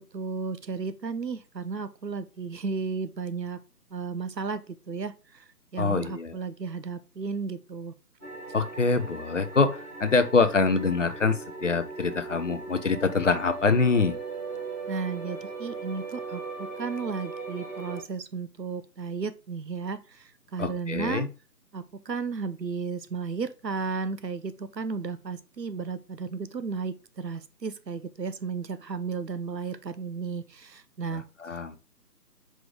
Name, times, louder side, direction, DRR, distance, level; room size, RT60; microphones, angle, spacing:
voice 1, 0.0-3.6 3.9-5.4 5.7-7.9 14.9-21.3 21.7-31.2, right 5 dB, 85° right, 0.9 m, -34 dB
voice 2, 5.8-6.4 8.5-14.2 20.6-21.3 31.1-31.8, left 4 dB, 50° left, 0.9 m, -25 dB
sound 1, 8.2-18.0, right 4 dB, 10° right, 2.0 m, -39 dB
5.0 x 4.6 x 5.0 m
figure-of-eight pair, 150°, 48 cm